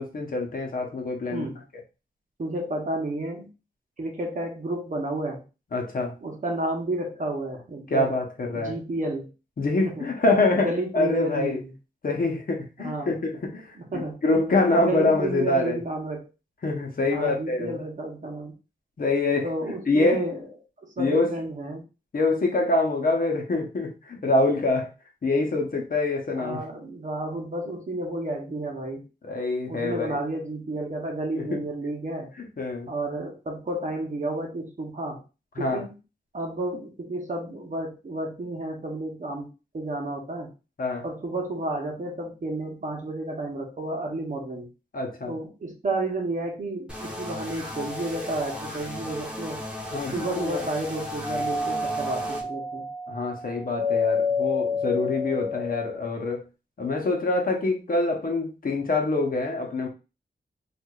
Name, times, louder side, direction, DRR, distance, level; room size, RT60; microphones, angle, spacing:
voice 1, 0.0-1.4 5.7-6.2 7.9-8.8 9.6-11.6 12.0-15.8 16.6-17.8 19.0-19.5 19.9-20.3 21.0-21.3 22.1-24.9 25.2-26.6 29.2-30.2 31.3-31.6 32.4-32.9 35.6-35.8 40.8-41.0 44.9-45.3 49.9-50.7 53.1-56.4 56.8-59.9, left 2 dB, 50° left, 2 dB, 0.8 m, -25 dB
voice 2, 2.4-3.5 4.0-5.4 6.2-8.1 8.5-9.3 9.9-10.1 10.5-11.7 12.8-13.2 13.8-14.2 14.7-16.3 17.1-18.5 19.4-20.5 20.8-21.8 26.3-29.0 29.7-32.3 32.9-35.2 35.6-35.9 36.3-40.5 41.0-44.7 45.3-49.6 50.1-52.9, right 2 dB, 45° right, 1 dB, 0.9 m, -31 dB
sound 1, 46.9-52.4, left 1 dB, 5° right, 1.0 m, -36 dB
Doorbell, 51.2-56.1, left 3 dB, 25° right, 1.2 m, -29 dB
4.6 x 2.5 x 2.4 m, 0.30 s
wide cardioid pair, 155°, 18 cm